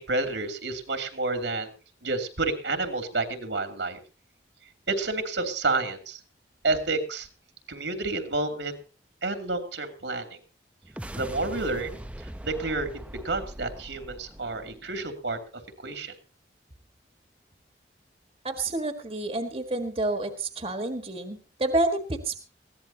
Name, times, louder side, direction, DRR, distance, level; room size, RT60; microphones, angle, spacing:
voice 1, 0.0-1.7 2.0-4.0 4.9-6.2 6.6-7.3 7.7-8.8 9.2-10.4 11.1-15.4 15.8-16.2, right 3 dB, 75° right, 6 dB, 2.9 m, -30 dB
sound 1, 10.8-15.4, right 1 dB, 5° right, 0.6 m, -41 dB
voice 2, 18.4-22.4, right 2 dB, 30° right, 6 dB, 1.7 m, -29 dB
21.0 x 16.5 x 2.9 m, 0.34 s
head